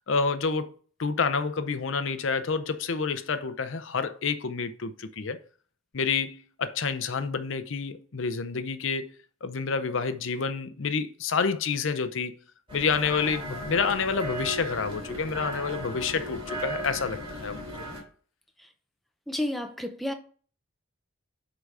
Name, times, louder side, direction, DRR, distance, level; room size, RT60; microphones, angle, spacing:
voice 1, 0.1-0.7 1.0-5.4 5.9-9.1 9.4-12.3 12.7-17.8, left 5 dB, 70° left, 0.6 m, -28 dB
sound 1, 12.7-18.0, equal, 25° right, 2.8 m, -36 dB
voice 2, 19.3-20.1, left 1 dB, ahead, 0.6 m, -31 dB
8.2 x 3.9 x 4.7 m
head